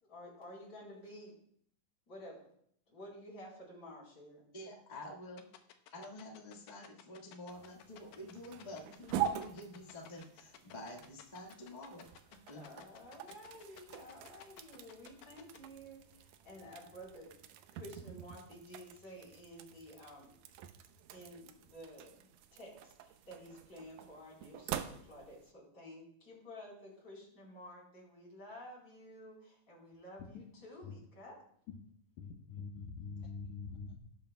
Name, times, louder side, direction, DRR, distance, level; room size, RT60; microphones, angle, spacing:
voice 1, 0.0-1.3 2.1-2.5 2.9-4.4 12.5-20.4 21.1-31.4, equal, 30° left, -4 dB, 4.3 m, -52 dB
voice 2, 4.5-5.4 5.9-12.6, left 1 dB, 50° left, -2 dB, 0.4 m, -49 dB
sound 1, 5.4-15.6, left 12 dB, 90° left, 2.6 m, -55 dB
sound 2, 7.5-25.5, right 10 dB, 80° right, 1.8 m, -45 dB
voice 3, 32.2-34.0, left 5 dB, 75° left, 1 dB, 2.1 m, -44 dB
18.0 x 9.0 x 2.3 m, 0.66 s
omnidirectional pair, 4.0 m